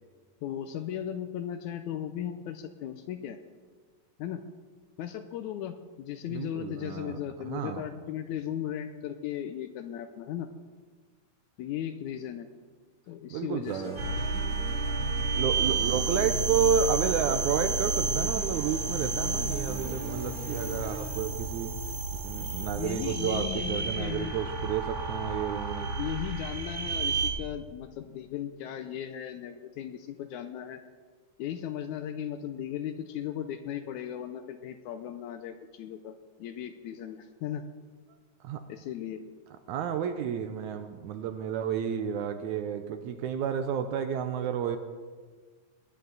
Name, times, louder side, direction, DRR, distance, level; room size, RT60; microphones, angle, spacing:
voice 1, 0.4-3.4 4.2-4.4 5.0-10.5 11.6-12.5 13.1-13.9 22.8-24.3 26.0-30.8 31.4-37.6 38.7-39.3, left 10 dB, 80° left, 8 dB, 1.8 m, -37 dB
voice 2, 6.3-7.2 7.5-7.8 13.3-14.2 15.4-21.7 22.2-25.9 38.4-38.6 39.7-44.8, right 8 dB, 80° right, 8 dB, 1.9 m, -31 dB
sound 1, 13.7-21.3, left 3 dB, 65° left, 3.6 m, -41 dB
sound 2, 14.0-27.3, right 4 dB, 65° right, 3.7 m, -31 dB
20.5 x 9.6 x 4.0 m, 1.5 s
omnidirectional pair, 3.8 m